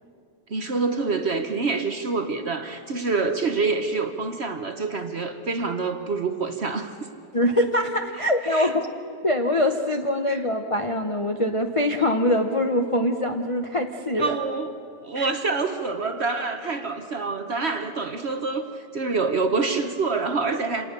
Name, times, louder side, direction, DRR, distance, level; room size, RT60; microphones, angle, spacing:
voice 1, 0.5-7.0 8.4-8.7 10.3-10.4 14.2-14.8 15.0-20.9, right 4 dB, 45° right, 7 dB, 1.0 m, -26 dB
voice 2, 7.3-8.9 9.2-14.3 15.1-15.3, left 1 dB, 40° left, 4 dB, 0.4 m, -23 dB
27.0 x 19.0 x 6.7 m, 2.5 s
omnidirectional pair, 2.0 m